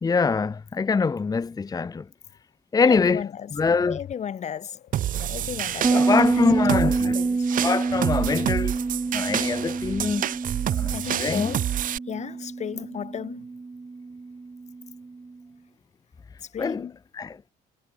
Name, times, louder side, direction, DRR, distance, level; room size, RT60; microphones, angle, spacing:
voice 1, 0.0-2.0 2.7-3.2 3.5-4.0 5.9-7.1 7.6-8.8 9.1-10.3 10.7-11.6 16.6-16.8 17.1-17.4, left 5 dB, 20° left, 0.9 m, -24 dB
voice 2, 2.8-3.5 3.9-4.8 5.1-7.5 10.9-11.7 12.1-13.5 16.5-17.0, left 8 dB, 45° left, 1.5 m, -34 dB
sound 1, 3.6-5.6 6.1-7.2 7.5-10.2 10.5-12.0, left 11 dB, 60° left, 4.7 m, -43 dB
sound 2, 4.9-12.0, right 12 dB, 55° right, 0.8 m, -29 dB
Bass guitar, 5.8-15.2, right 4 dB, 20° right, 2.6 m, -27 dB
cardioid pair, 110°, 17 cm